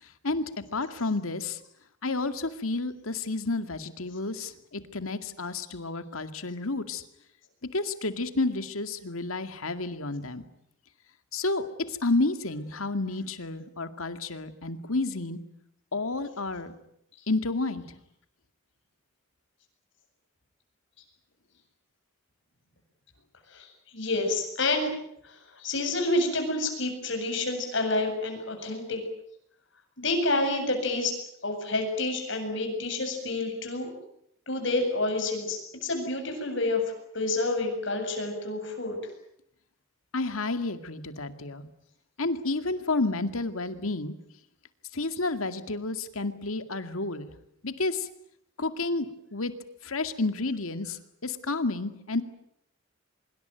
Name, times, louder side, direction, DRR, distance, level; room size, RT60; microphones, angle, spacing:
voice 1, 0.2-1.6 2.0-7.0 7.7-10.4 11.3-15.4 15.9-16.7 17.3-18.0 40.1-41.7 42.2-44.1 44.9-47.3 47.6-48.1 48.6-49.5 49.8-52.2, left 2 dB, 90° left, 9 dB, 2.2 m, -30 dB
voice 2, 23.5-24.9 25.2-29.0 30.0-31.1 31.4-33.9 34.5-36.8 37.1-39.0, left 2 dB, 60° left, 4 dB, 8.0 m, -29 dB
25.0 x 22.5 x 9.2 m, 0.73 s
head